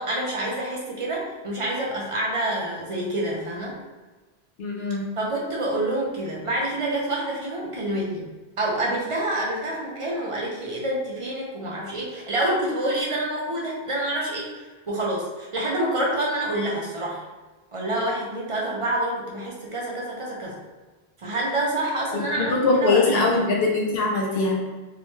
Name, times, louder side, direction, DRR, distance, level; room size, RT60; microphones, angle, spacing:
voice 1, 0.0-3.8 5.2-8.3 8.6-17.2 17.7-20.5 21.2-22.5 22.8-23.2, right 1 dB, 45° right, -3 dB, 0.4 m, -27 dB
voice 2, 4.6-5.1 22.1-24.5, left 3 dB, 70° left, -1 dB, 0.9 m, -22 dB
2.7 x 2.1 x 3.0 m, 1.3 s
omnidirectional pair, 1.0 m